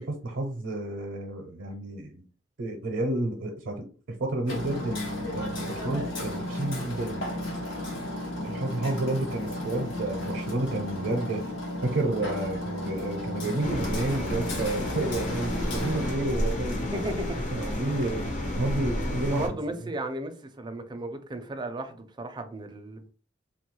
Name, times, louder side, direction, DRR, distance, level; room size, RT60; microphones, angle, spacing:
voice 1, 0.0-2.2 2.6-3.9 4.2-7.3 8.4-11.4 11.8-17.1 17.5-19.6, right 2 dB, 70° right, 0.6 m, -30 dB
Hammer, 4.5-16.1, left 1 dB, 75° left, 0.9 m, -34 dB
sound 1, 13.6-19.5, left 1 dB, 40° left, 0.7 m, -31 dB
voice 2, 16.8-17.4 19.3-23.1, right 1 dB, 25° right, 0.4 m, -35 dB
3.0 x 2.3 x 3.0 m
head